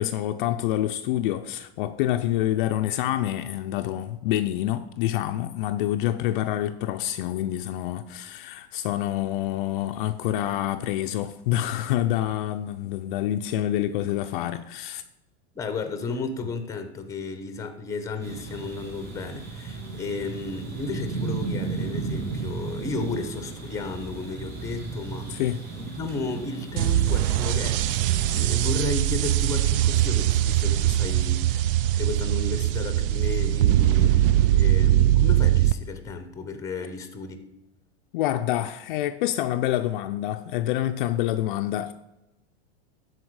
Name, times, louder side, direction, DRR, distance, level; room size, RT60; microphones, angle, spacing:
voice 1, 0.0-15.0 25.3-25.6 38.1-41.9, left 13 dB, 50° left, 0.4 m, -27 dB
voice 2, 15.5-25.4 25.7-27.8 28.3-37.4, left 3 dB, 10° left, 0.7 m, -33 dB
sound 1, 18.2-28.5, right 4 dB, 30° right, 3.2 m, -35 dB
sound 2, 26.8-35.7, right 13 dB, 55° right, 0.4 m, -21 dB
13.0 x 4.4 x 4.7 m
supercardioid pair, 150°, 33 cm